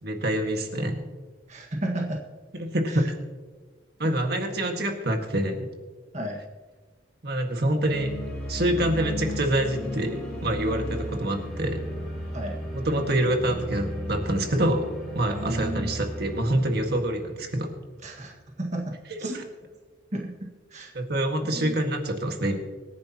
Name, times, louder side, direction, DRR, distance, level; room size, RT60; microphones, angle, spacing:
voice 1, 0.0-1.0 2.6-3.1 4.0-5.6 7.2-8.1 8.5-11.8 12.7-17.7 19.2-19.4 20.9-22.6, right 1 dB, 55° right, 3 dB, 1.8 m, -26 dB
voice 2, 1.5-2.2 2.9-3.1 6.1-6.4 12.3-12.6 15.3-16.0 18.0-19.4 20.1-20.9 21.4-21.8, right 1 dB, 40° right, 0 dB, 1.7 m, -33 dB
sound 1, 7.8-17.8, equal, 5° left, 4.8 m, -35 dB
25.5 x 10.5 x 2.9 m, 1.4 s
head